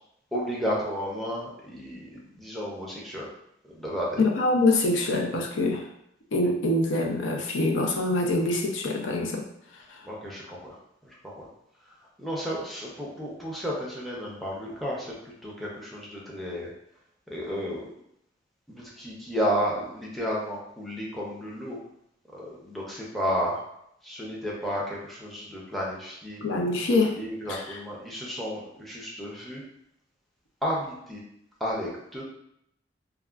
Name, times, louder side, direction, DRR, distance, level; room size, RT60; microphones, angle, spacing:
voice 1, 0.3-3.3 3.7-4.2 10.0-10.8 11.0-11.5 12.2-16.7 17.3-17.9 18.7-21.8 22.3-23.6 24.0-26.4 27.1-29.6 30.6-31.2 31.6-32.2, equal, ahead, -5 dB, 0.5 m, -32 dB
voice 2, 4.2-5.8 6.3-9.4 9.9-10.0 26.4-27.1 27.5-27.6, left 2 dB, 80° left, 1 dB, 0.5 m, -24 dB
3.5 x 2.1 x 2.3 m, 0.75 s
head